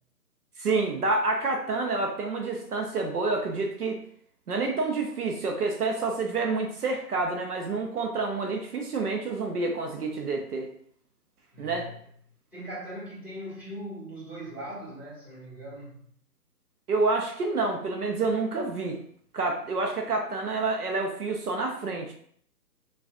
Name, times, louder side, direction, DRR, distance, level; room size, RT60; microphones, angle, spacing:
voice 1, 0.6-4.0 4.5-10.7 11.6-11.9 16.9-19.0 19.3-22.1, right 3 dB, 65° right, 2 dB, 0.7 m, -28 dB
voice 2, 11.5-11.9 12.5-16.0, right 1 dB, ahead, -10 dB, 1.5 m, -40 dB
4.5 x 2.4 x 2.5 m, 0.63 s
figure-of-eight pair, 145°, 49 cm